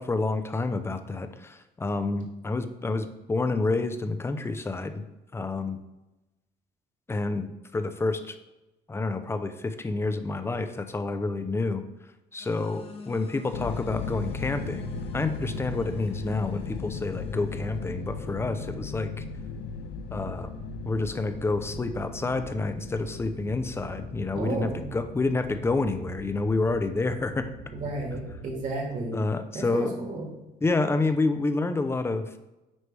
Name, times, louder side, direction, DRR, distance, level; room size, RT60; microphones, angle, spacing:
voice 1, 0.0-5.0 5.3-5.8 7.1-8.4 8.9-11.8 12.3-19.2 20.1-20.5 20.9-27.5 29.1-30.0 30.6-32.4, left 3 dB, 15° left, 9 dB, 0.5 m, -29 dB
sound 1, 12.4-17.8, left 4 dB, 35° left, 1.0 m, -50 dB
sound 2, 13.5-29.4, left 7 dB, 80° left, 0.4 m, -39 dB
sound 3, 13.7-29.0, right 4 dB, 70° right, 2.2 m, -44 dB
voice 2, 24.3-24.8 27.7-29.2 29.5-30.3, right 2 dB, 45° right, 0 dB, 1.9 m, -33 dB
9.4 x 3.2 x 3.3 m, 0.99 s
cardioid pair, 110°, 17 cm